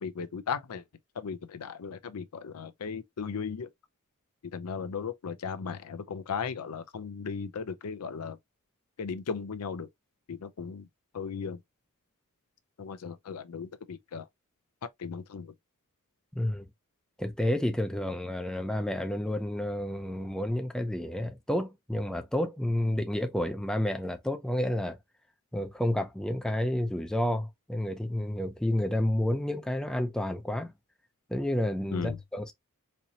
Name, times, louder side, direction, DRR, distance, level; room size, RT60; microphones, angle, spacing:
voice 1, 0.0-0.8 1.2-3.7 4.4-8.4 9.0-9.9 10.3-10.9 11.1-11.6 12.8-14.3 15.0-15.5 31.9-32.2, left 6 dB, 80° left, 0.5 m, -36 dB
voice 2, 16.3-16.7 17.2-25.0 25.5-30.7 31.3-32.5, left 1 dB, 5° left, 0.4 m, -30 dB
4.3 x 2.7 x 2.8 m
head